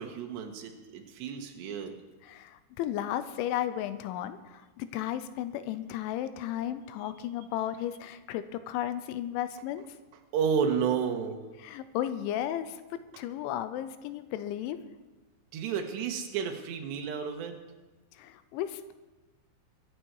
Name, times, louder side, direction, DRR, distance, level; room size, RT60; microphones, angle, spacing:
voice 1, 0.0-2.0 10.3-11.4 15.5-17.6, right 7 dB, 70° right, 4 dB, 3.4 m, -31 dB
voice 2, 2.2-9.9 11.6-12.8 13.2-14.8 18.1-18.9, left 11 dB, 90° left, 12 dB, 3.1 m, -34 dB
23.0 x 9.4 x 4.7 m, 1.2 s
omnidirectional pair, 5.3 m